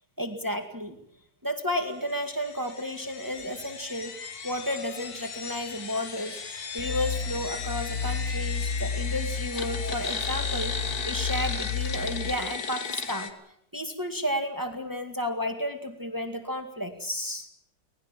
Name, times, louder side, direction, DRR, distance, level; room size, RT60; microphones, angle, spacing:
voice 1, 0.2-1.0 1.4-4.2 4.4-13.3 13.7-17.5, left 1 dB, 10° right, 6 dB, 2.1 m, -32 dB
sound 1, 2.1-13.3, left 5 dB, 60° left, 2.2 m, -36 dB
sound 2, 6.8-12.3, left 5 dB, 40° left, 2.1 m, -32 dB
25.0 x 19.0 x 7.6 m, 0.73 s
omnidirectional pair, 1.9 m